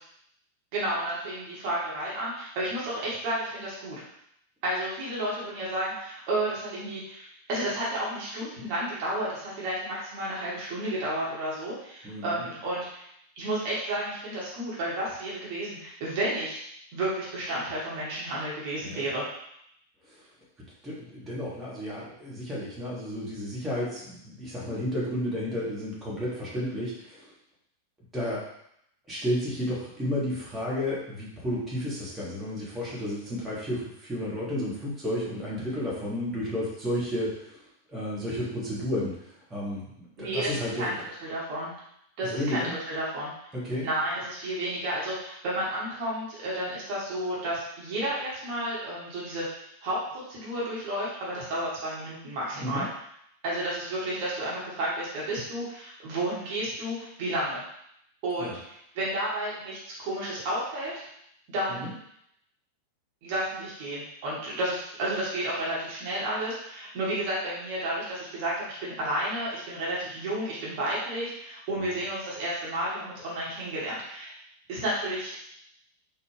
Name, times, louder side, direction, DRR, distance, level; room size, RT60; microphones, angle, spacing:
voice 1, 0.7-4.0 4.6-13.1 13.4-16.6 16.9-19.3 40.2-40.5 40.7-40.9 41.2-41.7 42.2-43.3 43.8-49.5 49.8-52.9 53.4-57.6 58.2-58.6 58.9-61.0 61.5-61.8 63.2-74.3 74.7-75.3, right 1 dB, 45° right, -7 dB, 1.3 m, -31 dB
voice 2, 12.0-12.4 18.8-19.1 20.1-20.2 20.8-27.3 28.1-28.4 29.1-37.6 37.9-40.9 42.2-42.7 43.5-43.9 52.6-52.8 58.4-58.5 61.7-61.9, left 1 dB, 10° right, -7 dB, 1.4 m, -32 dB
4.2 x 2.5 x 3.3 m, 0.74 s
figure-of-eight pair, 90°, 0 cm